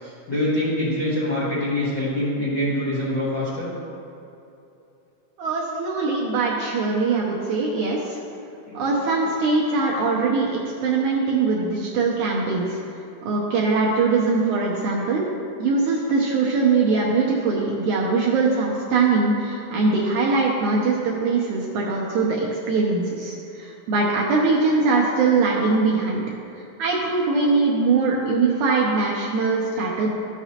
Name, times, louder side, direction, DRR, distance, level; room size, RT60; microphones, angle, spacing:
voice 1, 0.0-3.7 8.7-8.8, left 1 dB, 55° left, -10 dB, 1.3 m, -25 dB
voice 2, 5.4-8.2 8.7-12.8 13.2-15.3 15.6-26.2 26.5-30.1, right 4 dB, 75° right, -3 dB, 1.9 m, -22 dB
12.5 x 5.9 x 2.8 m, 2.8 s
omnidirectional pair, 4.1 m